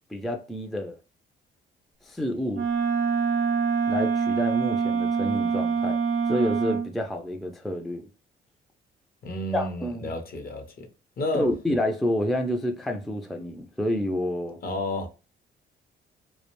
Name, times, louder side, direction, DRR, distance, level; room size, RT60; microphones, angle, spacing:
voice 1, 0.1-1.0 2.0-2.7 3.9-6.0 6.3-8.1 9.5-10.2 11.3-14.6, left 1 dB, ahead, 0.3 m, -29 dB
Wind instrument woodwind instrument, 2.5-6.9, right 5 dB, 65° right, 0.6 m, -25 dB
voice 2, 9.2-10.9 11.2-11.5 14.6-15.1, left 1 dB, 50° left, 0.7 m, -31 dB
2.4 x 2.1 x 3.0 m
cardioid pair, 90°, 20 cm